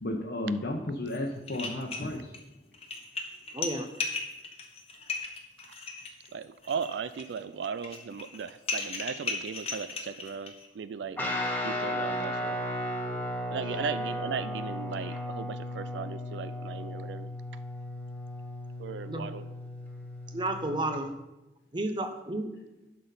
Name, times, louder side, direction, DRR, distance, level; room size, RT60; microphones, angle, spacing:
voice 1, 0.0-2.2, left 1 dB, 65° left, -1 dB, 0.9 m, -33 dB
sound 1, 1.1-1.2 1.5-2.4 2.7-10.7, left 4 dB, 35° left, 1.1 m, -36 dB
voice 2, 3.5-3.9 19.1-19.3 20.3-21.1 21.7-22.5, right 1 dB, 25° right, 7 dB, 0.7 m, -32 dB
voice 3, 6.3-11.2 11.6-12.6 13.5-17.3 18.8-19.5, right 6 dB, 85° right, 14 dB, 0.4 m, -37 dB
Guitar, 11.2-21.0, left 1 dB, 10° left, 1.1 m, -35 dB
11.5 x 4.1 x 5.4 m, 0.98 s
head